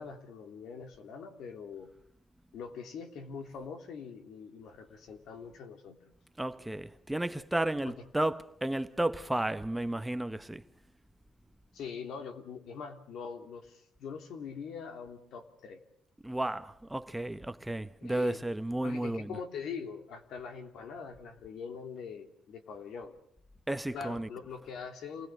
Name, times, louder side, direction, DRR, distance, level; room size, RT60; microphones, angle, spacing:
voice 1, 0.0-1.9 2.5-6.1 7.8-8.0 11.7-15.8 18.0-18.4 18.8-23.1 23.9-25.3, left 6 dB, 75° left, 3.2 m, -43 dB
voice 2, 6.4-10.6 16.2-19.4 23.7-24.3, right 1 dB, 10° right, 0.9 m, -33 dB
28.5 x 20.0 x 6.4 m
cardioid pair, 90°, 0 cm